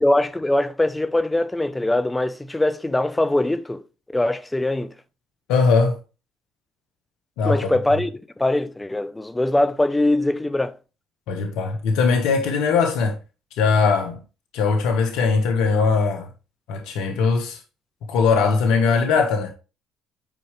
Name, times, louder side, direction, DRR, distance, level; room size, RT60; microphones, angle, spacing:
voice 1, 0.0-3.8 4.1-4.9 7.4-10.8, left 1 dB, 15° left, 0.6 m, -22 dB
voice 2, 5.5-6.0 7.4-7.7 11.3-13.2 13.6-14.2 14.5-16.3 16.7-17.6 18.1-19.5, left 4 dB, 75° left, 1.2 m, -20 dB
8.7 x 4.7 x 3.2 m
hypercardioid pair, 65°, 0 cm